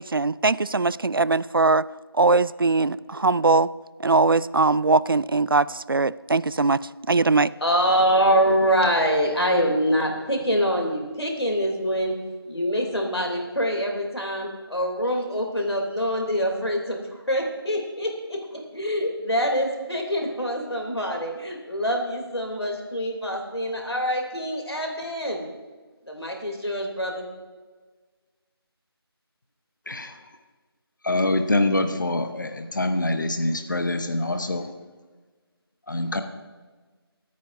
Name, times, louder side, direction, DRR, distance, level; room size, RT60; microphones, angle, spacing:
voice 1, 0.0-1.8 2.2-3.7 4.0-6.8 7.1-7.5, right 3 dB, 60° right, 19 dB, 0.4 m, -21 dB
voice 2, 7.6-12.2 12.5-25.4 26.1-27.3, equal, 80° left, 2 dB, 3.0 m, -25 dB
voice 3, 31.0-34.7 35.9-36.2, left 2 dB, 50° left, 8 dB, 0.9 m, -25 dB
24.0 x 9.4 x 2.6 m, 1.4 s
figure-of-eight pair, 165°, 13 cm